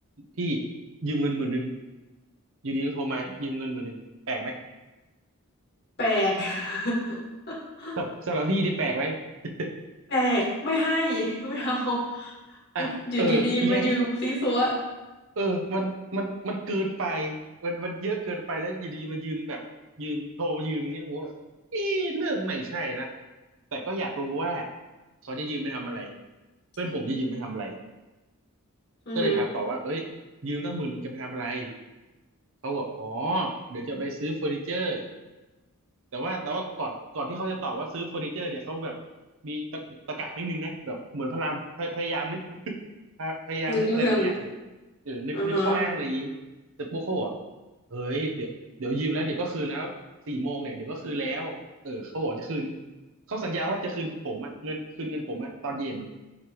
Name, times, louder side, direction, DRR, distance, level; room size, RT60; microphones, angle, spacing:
voice 1, 1.0-1.7 2.6-4.0 4.3-4.6 8.0-9.2 9.4-9.7 12.7-13.9 15.4-17.4 17.6-19.6 20.0-21.3 21.7-23.1 23.7-24.7 25.2-26.1 26.8-27.7 29.1-30.1 30.4-31.7 32.6-35.1 36.1-38.9 39.4-42.8 43.2-44.5 45.1-46.3 46.8-47.3 47.9-48.5 48.8-49.9 50.3-51.6 51.8-52.7 53.3-56.1, right 1 dB, 65° right, 2 dB, 0.7 m, -30 dB
voice 2, 6.0-7.2 7.5-8.0 10.1-12.3 12.8-14.8 29.1-29.4 43.7-44.3 45.3-45.8, equal, 50° left, -5 dB, 1.9 m, -26 dB
9.6 x 3.3 x 3.0 m, 1.1 s
head